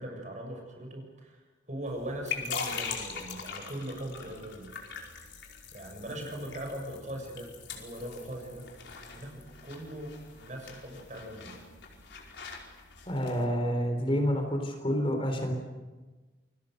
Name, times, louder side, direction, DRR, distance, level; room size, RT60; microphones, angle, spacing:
voice 1, 0.0-4.7 5.7-8.7 9.1-11.6, right 1 dB, 40° right, 2 dB, 6.9 m, -40 dB
sound 1, 1.9-13.4, left 6 dB, 80° left, 4.9 m, -42 dB
voice 2, 13.1-15.5, equal, 30° left, 4 dB, 4.0 m, -28 dB
28.5 x 22.0 x 6.6 m, 1.2 s
head